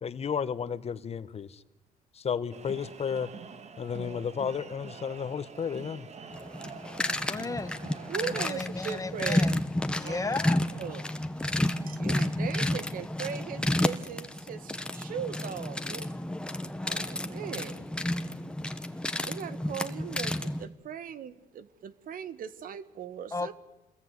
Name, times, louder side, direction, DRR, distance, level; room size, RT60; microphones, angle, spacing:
voice 1, 0.0-1.6 2.1-3.3 3.8-6.1, left 7 dB, 45° left, 1.4 m, -33 dB
sound 1, 2.5-8.5, right 6 dB, 45° right, 2.2 m, -46 dB
sound 2, 6.3-20.7, left 1 dB, 5° left, 1.6 m, -31 dB
voice 2, 7.3-7.7 8.2-9.6 10.0-10.7 23.3-23.5, left 3 dB, 20° left, 1.6 m, -34 dB
voice 3, 8.1-9.5 10.0-10.4 10.7-11.0 11.4-11.5 11.8-16.1 16.8-17.9 19.2-23.5, right 8 dB, 70° right, 1.6 m, -39 dB
28.0 x 21.5 x 9.7 m
cardioid pair, 115°, 15 cm